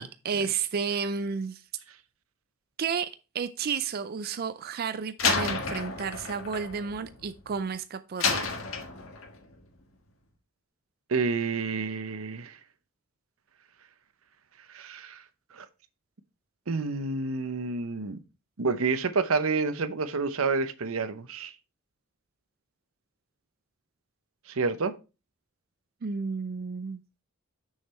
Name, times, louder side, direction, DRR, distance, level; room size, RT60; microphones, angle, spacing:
voice 1, 0.0-1.6 2.8-8.5 26.0-27.0, right 6 dB, 50° right, 0.4 m, -32 dB
Slam, 5.2-7.6 8.2-9.4, left 5 dB, 75° left, 1.4 m, -30 dB
voice 2, 11.1-12.6 14.7-15.2 15.5-15.7 16.7-18.2 18.6-21.5 24.5-24.9, right 4 dB, 90° right, 0.8 m, -29 dB
6.5 x 6.4 x 4.3 m
head